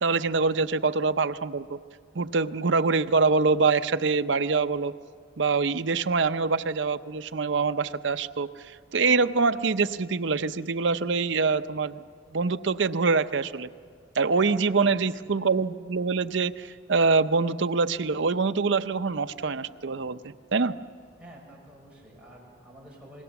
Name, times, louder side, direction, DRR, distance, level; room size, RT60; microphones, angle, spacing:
voice 1, 0.0-1.8 2.1-4.9 5.4-8.5 8.9-12.0 12.3-13.7 14.2-20.8, right 4 dB, 70° right, 11 dB, 0.7 m, -25 dB
voice 2, 14.4-15.0 21.2-23.2, right 1 dB, 5° right, -3 dB, 6.2 m, -49 dB
28.0 x 20.5 x 7.1 m, 2.1 s
head